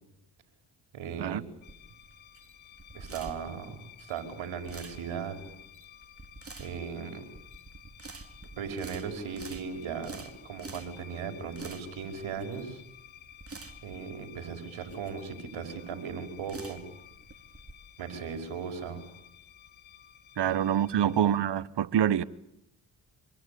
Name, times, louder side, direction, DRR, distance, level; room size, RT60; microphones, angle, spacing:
voice 1, 0.9-1.4 2.9-5.4 6.6-7.2 8.6-10.2 10.4-12.8 13.8-16.8 18.0-19.0 20.4-20.5 20.9-21.1, right 6 dB, 75° right, 5.2 m, -37 dB
sound 1, 1.3-17.7, right 3 dB, 30° right, 3.7 m, -48 dB
sound 2, 1.6-21.4, left 10 dB, 75° left, 2.9 m, -54 dB
voice 2, 20.4-22.2, right 9 dB, 60° right, 1.3 m, -26 dB
26.5 x 25.5 x 8.7 m
supercardioid pair, 55°, 47 cm